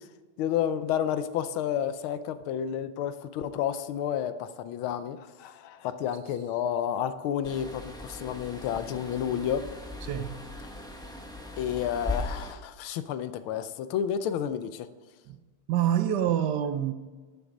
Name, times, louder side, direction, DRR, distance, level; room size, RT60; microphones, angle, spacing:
voice 1, 0.4-9.6 11.6-14.9, left 9 dB, 85° left, 1.5 m, -30 dB
sound 1, 7.4-12.5, left 2 dB, 5° left, 0.4 m, -38 dB
voice 2, 10.0-10.4 15.3-15.4 15.7-16.9, right 10 dB, 65° right, 1.2 m, -26 dB
11.0 x 7.0 x 5.0 m
omnidirectional pair, 2.2 m